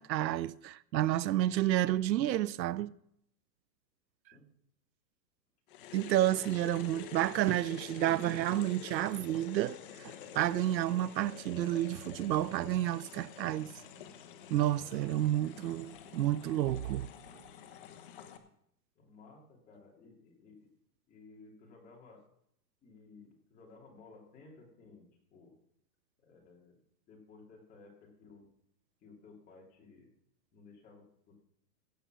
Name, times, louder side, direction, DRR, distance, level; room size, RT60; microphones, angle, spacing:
voice 1, 0.0-2.9 5.9-13.7 14.5-17.1, right 13 dB, 90° right, 0.7 m, -30 dB
sound 1, 5.7-18.4, left 9 dB, 30° left, 1.0 m, -49 dB
voice 2, 14.6-15.1 18.9-20.7 21.1-22.2 22.8-25.1 25.3-25.5 26.2-26.8 27.1-28.5 29.0-30.1 30.5-31.4, left 3 dB, 15° left, 2.6 m, -57 dB
16.0 x 6.9 x 6.1 m
hypercardioid pair, 165°, 50 cm